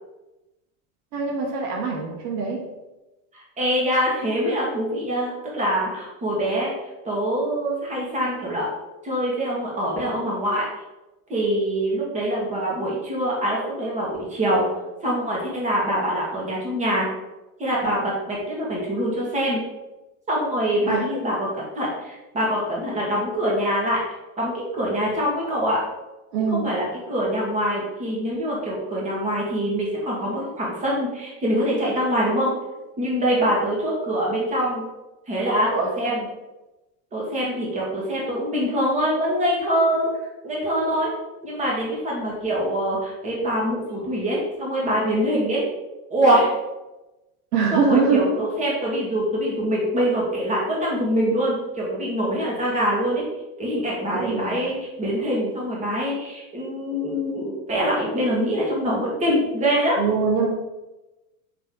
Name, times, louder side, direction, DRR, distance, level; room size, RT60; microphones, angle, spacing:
voice 1, 1.1-2.6 20.9-21.0 26.3-26.7 35.7-36.0 47.5-48.4 54.1-54.7 60.0-60.5, right 5 dB, 85° right, -1 dB, 1.8 m, -23 dB
voice 2, 3.3-6.7 7.0-8.7 9.0-10.6 11.3-14.7 15.0-17.1 17.6-19.6 20.3-24.0 24.4-25.8 26.5-32.5 33.0-34.8 35.3-36.3 37.1-40.1 40.4-41.1 41.4-45.6 46.1-46.5 47.7-53.2 53.6-60.0, equal, 15° right, -4 dB, 1.8 m, -24 dB
6.9 x 5.9 x 3.8 m, 1.0 s
supercardioid pair, 165°, 44 cm